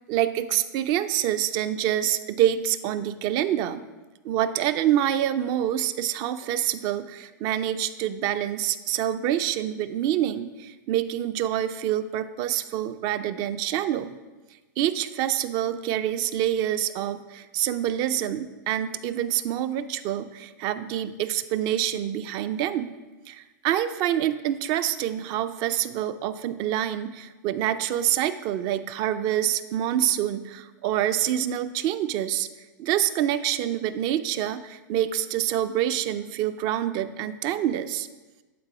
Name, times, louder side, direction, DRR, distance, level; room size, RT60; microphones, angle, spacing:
voice 1, 0.1-3.8 4.2-14.1 14.8-22.9 23.3-32.5 32.8-38.1, right 11 dB, 40° right, 13 dB, 0.4 m, -26 dB
11.0 x 4.1 x 4.9 m, 1.2 s
hypercardioid pair, 130°, 11 cm